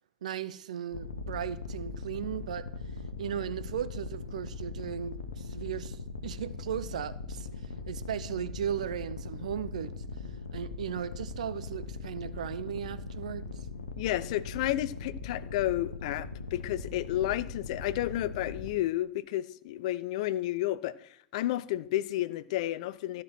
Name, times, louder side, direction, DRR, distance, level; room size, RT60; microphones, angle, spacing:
voice 1, 0.2-2.7 3.2-9.9 10.5-13.7, right 9 dB, 75° right, 0.7 m, -37 dB
sound 1, 0.9-18.7, left 4 dB, 85° left, 1.2 m, -40 dB
voice 2, 14.0-23.2, left 14 dB, 60° left, 0.5 m, -31 dB
13.5 x 6.0 x 6.0 m
hypercardioid pair, 85°, 4 cm